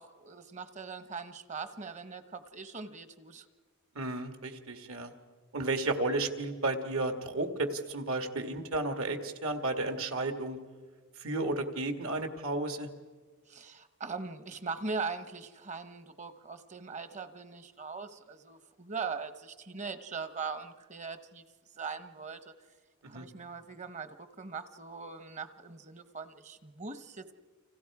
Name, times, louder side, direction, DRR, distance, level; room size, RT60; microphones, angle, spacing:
voice 1, 0.0-3.4 13.5-21.4 21.8-22.5 23.0-27.3, right 4 dB, 35° right, 11 dB, 1.0 m, -41 dB
voice 2, 4.0-5.1 5.5-10.6 11.2-12.9 23.0-23.3, right 2 dB, 70° right, 7 dB, 1.9 m, -33 dB
29.5 x 26.0 x 4.9 m, 1.5 s
head